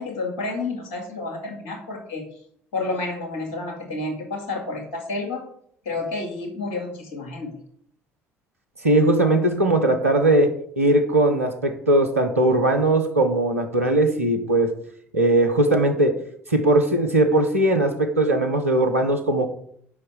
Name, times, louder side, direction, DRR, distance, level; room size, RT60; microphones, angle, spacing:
voice 1, 0.0-2.3 2.7-5.4 5.9-7.6, left 3 dB, 70° left, 2 dB, 2.0 m, -30 dB
voice 2, 8.8-14.7 15.1-16.2 16.5-19.5, right 1 dB, 90° right, 4 dB, 1.0 m, -19 dB
6.9 x 5.6 x 6.8 m, 0.66 s
figure-of-eight pair, 55°, 8 cm